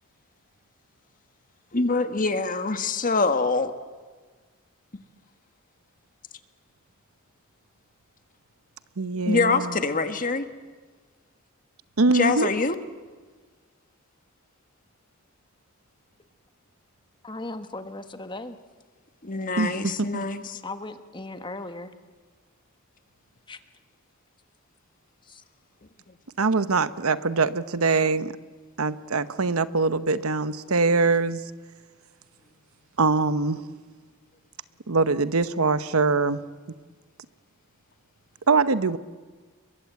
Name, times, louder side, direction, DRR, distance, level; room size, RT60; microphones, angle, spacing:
voice 1, 1.7-3.7 9.3-10.5 12.1-12.8 19.2-20.6, left 3 dB, 40° left, 9 dB, 1.5 m, -24 dB
voice 2, 9.0-9.7 12.0-12.5 19.6-20.2 26.4-28.3 28.8-31.4 33.0-33.7 34.9-36.4 38.5-39.0, right 4 dB, 85° right, 13 dB, 0.9 m, -23 dB
voice 3, 17.2-18.6 20.5-21.9 23.5-23.6 25.2-25.4, left 2 dB, 20° left, 8 dB, 1.4 m, -37 dB
29.5 x 22.5 x 8.3 m, 1.4 s
head